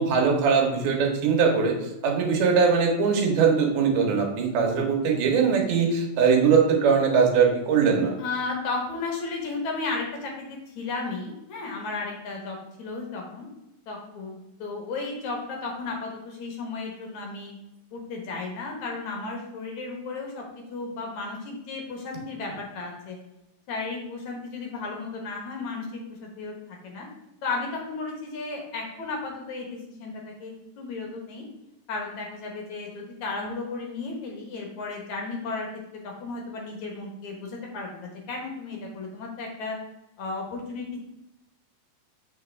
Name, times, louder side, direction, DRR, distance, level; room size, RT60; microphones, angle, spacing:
voice 1, 0.0-1.7 2.0-8.1, right 6 dB, 85° right, 1 dB, 3.4 m, -21 dB
voice 2, 8.2-13.5 13.9-17.6 17.9-23.2 23.7-27.1 27.4-31.4 31.9-35.7 36.0-39.8 40.2-40.9, left 3 dB, 60° left, 0 dB, 2.4 m, -34 dB
7.5 x 6.3 x 3.5 m, 0.93 s
omnidirectional pair, 4.2 m